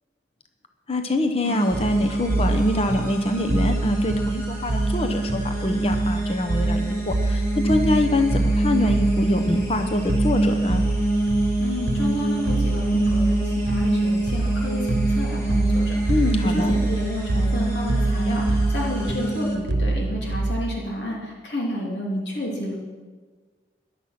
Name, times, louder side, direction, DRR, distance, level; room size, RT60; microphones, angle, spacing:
voice 1, 0.9-10.8 16.1-16.7, left 1 dB, 35° left, 6 dB, 0.9 m, -24 dB
sound 1, 1.4-19.6, right 1 dB, 15° left, 2.8 m, -26 dB
sound 2, 1.7-20.8, right 2 dB, 80° right, 0.9 m, -26 dB
voice 2, 11.6-22.8, left 1 dB, 80° left, -3 dB, 3.1 m, -30 dB
15.0 x 11.0 x 6.0 m, 1.4 s
head